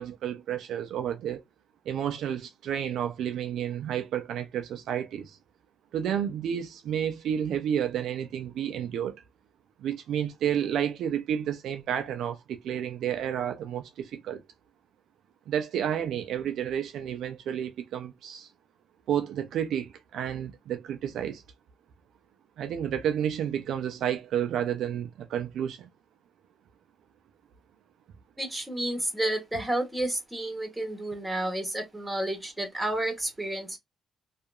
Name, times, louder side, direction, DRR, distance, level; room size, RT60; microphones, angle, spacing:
voice 1, 0.0-1.4 1.9-5.4 5.9-9.2 9.8-14.4 15.5-18.5 19.1-21.4 22.6-25.9, right 9 dB, 75° right, 0.4 m, -31 dB
voice 2, 28.4-33.8, right 1 dB, 10° right, 1.3 m, -31 dB
2.8 x 2.4 x 2.2 m
cardioid pair, 90°, 0 cm